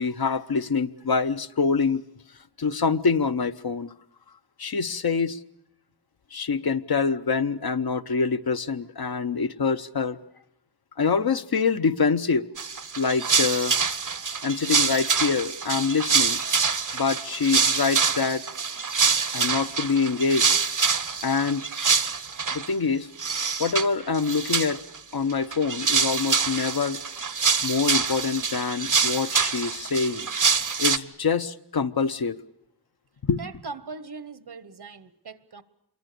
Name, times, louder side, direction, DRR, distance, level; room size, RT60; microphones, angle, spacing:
voice 1, 0.0-2.0 2.6-3.9 4.6-5.4 6.3-10.2 11.0-12.5 13.0-13.7 14.4-16.4 16.9-18.5 19.3-20.5 21.2-21.7 22.5-23.1 23.6-24.8 25.1-27.0 27.6-30.3 30.8-32.4 33.2-33.4, left 5 dB, 65° left, 0.9 m, -25 dB
sound 1, 12.6-22.7 23.2-23.9 24.1-25.0 25.3-31.0, right 5 dB, 50° right, 0.9 m, -25 dB
Percussion, 16.6-21.0 21.2-21.3, right 1 dB, 85° left, 6.6 m, -59 dB
voice 2, 33.4-35.6, right 4 dB, 70° right, 1.3 m, -40 dB
27.5 x 23.0 x 6.8 m
wide cardioid pair, 75°, 40 cm